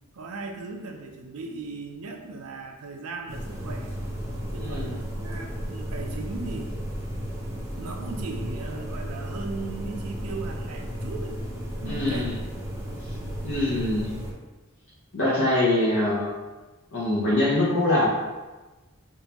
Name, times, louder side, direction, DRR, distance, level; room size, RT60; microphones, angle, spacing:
voice 1, 0.1-3.9 4.5-6.8 7.8-11.4 11.8-12.4 13.0-13.5, right 3 dB, 80° right, 3 dB, 0.5 m, -38 dB
sound 1, 3.3-14.3, equal, 10° right, 0.5 m, -34 dB
voice 2, 4.6-5.0 11.8-12.3 13.4-14.1 15.1-16.3 16.9-18.1, left 1 dB, 60° left, -8 dB, 0.7 m, -23 dB
3.6 x 2.7 x 2.9 m, 1.2 s
head